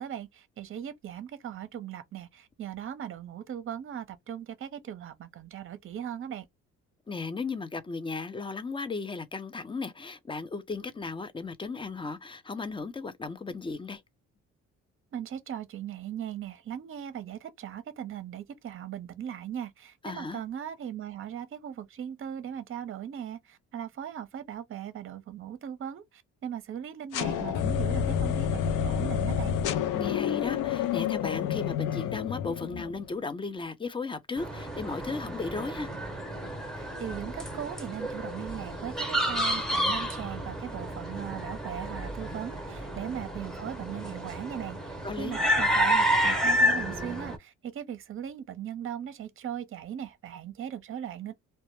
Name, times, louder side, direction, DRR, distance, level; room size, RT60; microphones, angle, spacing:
voice 1, 0.0-6.5 15.1-29.6 36.8-51.3, right 9 dB, 45° right, 0.6 m, -39 dB
voice 2, 7.1-14.0 20.0-20.4 29.9-35.9 45.0-45.4, left 4 dB, 15° left, 0.4 m, -35 dB
sound 1, 27.1-33.1, left 8 dB, 85° left, 0.5 m, -29 dB
sound 2, 34.4-47.4, equal, ahead, 0.8 m, -30 dB
2.1 x 2.0 x 2.9 m
cardioid pair, 90°, 30 cm